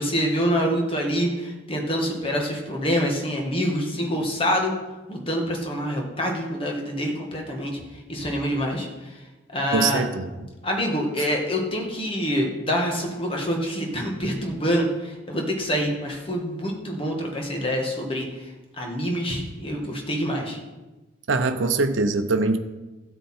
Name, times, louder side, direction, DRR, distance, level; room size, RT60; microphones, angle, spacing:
voice 1, 0.0-4.7 5.1-7.8 8.1-8.9 9.5-10.0 10.6-18.5 18.8-20.6, equal, 30° left, 1 dB, 1.8 m, -26 dB
voice 2, 9.7-10.3 21.3-22.6, right 3 dB, 85° right, 7 dB, 0.7 m, -22 dB
12.5 x 8.2 x 4.4 m, 1.1 s
head